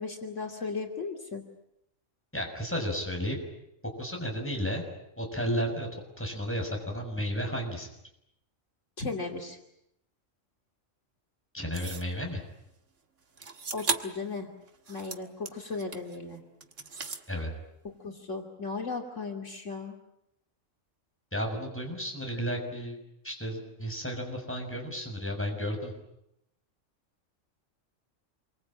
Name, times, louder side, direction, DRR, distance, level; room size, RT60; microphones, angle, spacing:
voice 1, 0.0-1.4 9.0-9.6 13.7-14.5 14.9-16.4 18.0-20.0, left 4 dB, 70° left, 2 dB, 3.1 m, -36 dB
voice 2, 2.3-3.4 4.0-4.8 5.2-7.9 11.5-12.4 17.3-17.5 21.3-23.0 23.2-25.9, equal, 10° left, 2 dB, 6.6 m, -33 dB
sound 1, 11.7-12.1 13.4-14.2 14.7-16.2 16.6-17.3, right 4 dB, 70° right, 2.0 m, -36 dB
28.0 x 24.0 x 8.9 m, 0.81 s
omnidirectional pair, 1.3 m